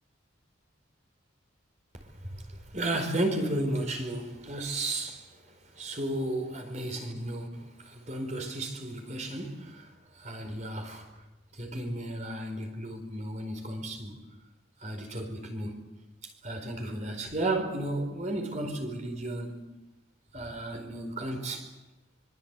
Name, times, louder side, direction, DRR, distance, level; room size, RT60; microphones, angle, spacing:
voice 1, 2.2-5.4 5.7-11.1 11.5-14.2 14.8-15.9 16.2-19.7 20.3-21.7, right 1 dB, 35° right, 5 dB, 4.7 m, -34 dB
25.0 x 24.5 x 8.4 m, 1.0 s
head